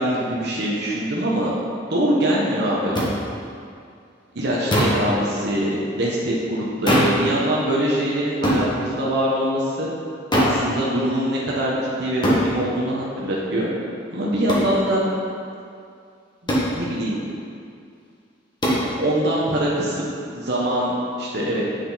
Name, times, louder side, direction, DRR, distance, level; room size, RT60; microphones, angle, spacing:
voice 1, 0.0-1.5 1.9-3.0 4.4-9.9 10.3-13.7 14.1-15.0 16.7-17.2 18.7-20.0 20.3-21.6, right 1 dB, 65° right, -5 dB, 1.2 m, -23 dB
sound 1, 3.0-3.1 4.7-5.0 6.9-7.2 8.4-8.7 10.3-10.6 12.2-12.5 14.5-14.7 16.5-16.7 18.6-18.9, equal, 25° left, 1.5 m, -20 dB
8.5 x 6.3 x 4.1 m, 2.4 s
head